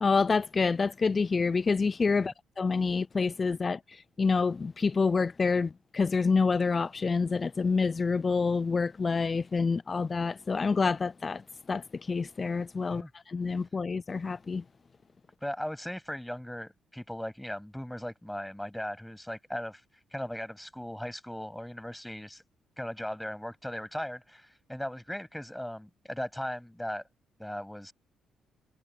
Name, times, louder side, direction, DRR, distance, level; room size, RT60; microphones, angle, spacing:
voice 1, 0.0-11.4 11.7-14.6, left 4 dB, 35° left, 0.4 m, -27 dB
voice 2, 15.4-19.8 20.1-22.4 22.8-27.0 27.4-27.9, left 1 dB, 5° left, 8.0 m, -38 dB
hypercardioid pair, 45°, 0 cm